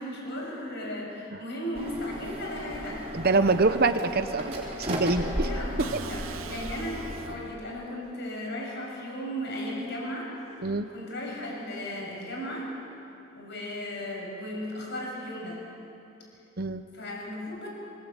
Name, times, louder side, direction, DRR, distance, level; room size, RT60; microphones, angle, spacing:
voice 1, 0.0-3.1 5.3-10.3 10.9-12.7 13.4-15.6 16.9-17.7, left 1 dB, 55° left, -2 dB, 7.0 m, -36 dB
sound 1, 1.7-7.4, equal, 30° right, 4.1 m, -35 dB
voice 2, 3.1-5.5 5.8-5.9 10.6-10.9 16.6-16.8, right 3 dB, 45° right, 9 dB, 0.9 m, -25 dB
sound 2, 5.8-7.7, right 6 dB, 75° right, 0.8 m, -41 dB
26.5 x 18.5 x 9.0 m, 2.8 s
head